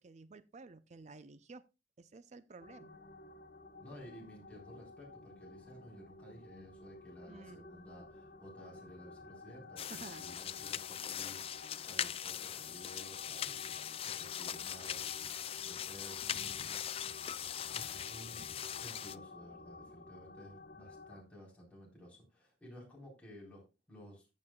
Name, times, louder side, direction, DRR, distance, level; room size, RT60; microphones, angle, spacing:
voice 1, 0.0-1.6 2.0-3.0 7.3-7.7 9.9-10.4, right 3 dB, 40° right, 0.5 m, -52 dB
sound 1, 2.6-21.2, left 2 dB, 55° left, 0.9 m, -53 dB
voice 2, 3.8-16.9 17.1-18.5 18.8-24.3, equal, 10° left, 4.0 m, -55 dB
sound 2, 9.8-19.2, left 9 dB, 35° left, 0.4 m, -41 dB
14.0 x 7.6 x 2.3 m
head